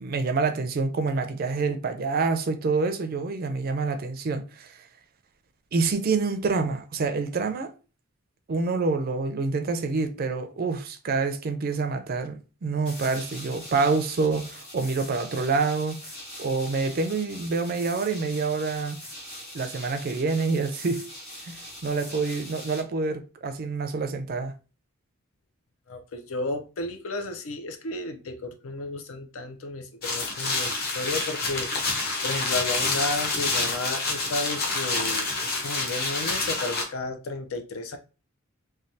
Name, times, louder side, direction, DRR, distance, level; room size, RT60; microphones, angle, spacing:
voice 1, 0.0-4.8 5.7-7.7 8.5-16.0 16.4-19.0 19.5-21.0 21.4-24.5, right 4 dB, 45° right, 0.4 m, -27 dB
sound 1, 12.8-22.8, left 1 dB, 30° left, 1.4 m, -42 dB
voice 2, 25.9-31.9 32.2-38.0, left 2 dB, 80° left, 0.5 m, -33 dB
sound 2, 30.0-36.8, left 3 dB, 45° left, 0.7 m, -28 dB
3.2 x 2.2 x 2.6 m
head